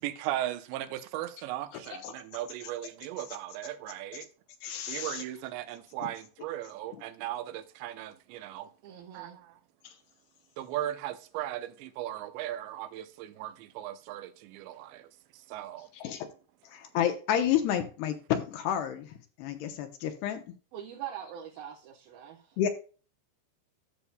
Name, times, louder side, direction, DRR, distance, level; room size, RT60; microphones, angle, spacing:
voice 1, 0.0-4.3 4.9-8.7 9.1-9.6 10.6-15.1 15.3-15.9, right 13 dB, 85° right, 3.0 m, -37 dB
voice 2, 4.6-5.2 9.8-9.9 15.9-16.3 16.7-20.4 22.6-22.7, left 10 dB, 75° left, 2.8 m, -30 dB
voice 3, 8.8-9.4 20.7-22.6, right 10 dB, 70° right, 2.7 m, -43 dB
12.5 x 7.0 x 2.2 m
omnidirectional pair, 5.0 m